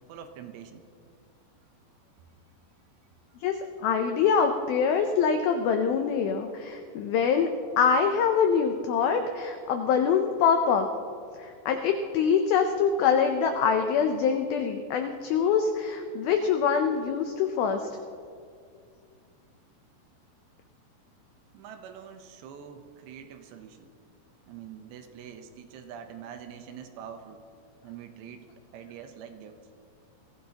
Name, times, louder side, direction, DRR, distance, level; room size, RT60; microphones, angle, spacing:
voice 1, 0.1-0.8 21.5-23.9 24.5-27.4 27.8-28.5 28.7-29.6, right 8 dB, 80° right, 6 dB, 3.0 m, -44 dB
voice 2, 3.4-10.9 11.4-17.9, left 6 dB, 90° left, 5 dB, 2.1 m, -24 dB
23.5 x 15.0 x 2.9 m, 2.3 s
omnidirectional pair, 5.2 m